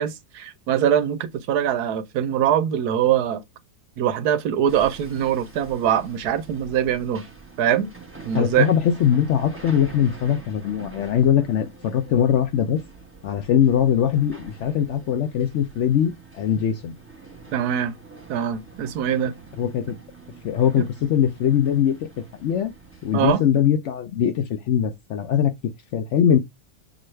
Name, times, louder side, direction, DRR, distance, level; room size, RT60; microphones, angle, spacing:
voice 1, 0.0-3.4 4.0-7.2 7.6-7.9 8.2-8.7 17.5-17.9 18.3-19.3 20.8-20.9 23.1-23.4, right 9 dB, 85° right, 1.2 m, -23 dB
Hammer, 4.7-23.3, right 3 dB, 10° right, 0.9 m, -45 dB
voice 2, 8.3-12.8 13.2-16.9 19.6-19.9 20.4-22.7 23.0-25.5 25.9-26.4, left 9 dB, 65° left, 0.7 m, -21 dB
6.1 x 2.4 x 3.1 m
omnidirectional pair, 1.6 m